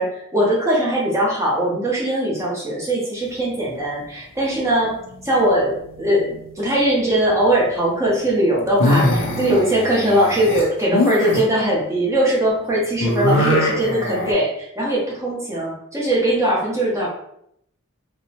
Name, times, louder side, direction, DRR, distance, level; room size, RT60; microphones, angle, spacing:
voice 1, 0.0-4.9 5.2-17.1, right 1 dB, 15° right, -5 dB, 0.7 m, -20 dB
sound 1, 4.9-5.7 6.0-6.5 8.7-11.4 13.0-14.3, left 1 dB, 60° left, 0.5 m, -22 dB
2.7 x 2.0 x 2.7 m, 0.74 s
head